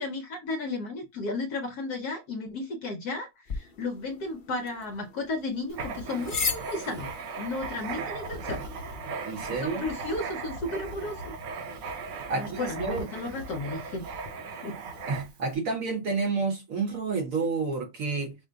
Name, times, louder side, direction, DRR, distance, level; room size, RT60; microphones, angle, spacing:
voice 1, 0.0-7.1 7.4-8.7 9.5-11.3 12.3-14.1 14.6-14.8, left 2 dB, 65° left, 1.1 m, -34 dB
sound 1, 3.5-9.9, left 5 dB, 80° left, 0.4 m, -38 dB
Writing, 5.7-15.5, right 4 dB, 70° right, 1.5 m, -37 dB
voice 2, 9.2-9.9 12.3-13.1 15.1-18.4, right 4 dB, 50° right, 1.2 m, -30 dB
5.0 x 2.1 x 3.8 m
omnidirectional pair, 2.1 m